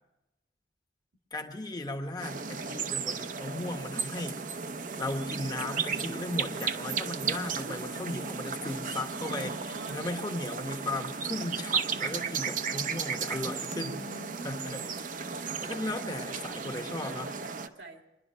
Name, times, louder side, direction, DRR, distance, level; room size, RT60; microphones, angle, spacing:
voice 1, 1.3-4.4 4.9-9.5 9.9-14.0 14.4-14.8 15.6-17.3, left 2 dB, 25° left, 4 dB, 1.2 m, -36 dB
sound 1, 2.2-17.7, right 5 dB, 50° right, 0.7 m, -35 dB
voice 2, 8.9-10.0 10.6-10.7 13.7-15.0 16.7-18.0, right 2 dB, 85° right, 4 dB, 1.9 m, -46 dB
23.5 x 11.0 x 5.5 m, 0.97 s
head